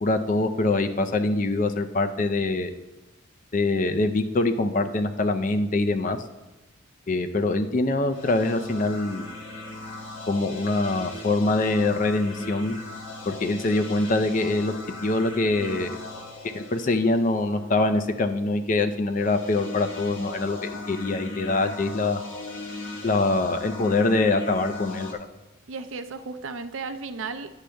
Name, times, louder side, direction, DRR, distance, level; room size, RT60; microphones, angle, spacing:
voice 1, 0.0-2.7 3.5-6.2 7.1-9.3 10.3-12.7 13.3-14.7 15.0-15.9 16.5-22.2 23.0-25.3, left 2 dB, 40° left, 7 dB, 0.4 m, -24 dB
sound 1, 8.1-17.6 19.1-25.1, left 2 dB, 65° left, 1.4 m, -38 dB
voice 2, 15.6-16.0 25.7-27.6, right 4 dB, 70° right, 9 dB, 0.6 m, -35 dB
10.0 x 3.4 x 6.3 m, 1.0 s
head